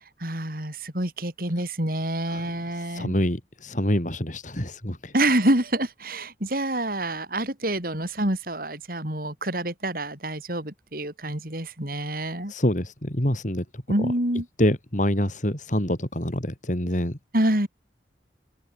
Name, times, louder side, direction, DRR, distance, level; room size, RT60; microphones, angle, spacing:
voice 1, 0.2-3.1 5.1-12.5 13.9-14.5 17.3-17.7, right 1 dB, 55° right, 6.7 m, -27 dB
voice 2, 2.3-5.1 12.5-13.6 14.0-14.1 14.6-17.2, left 1 dB, 45° left, 4.1 m, -26 dB
open air
head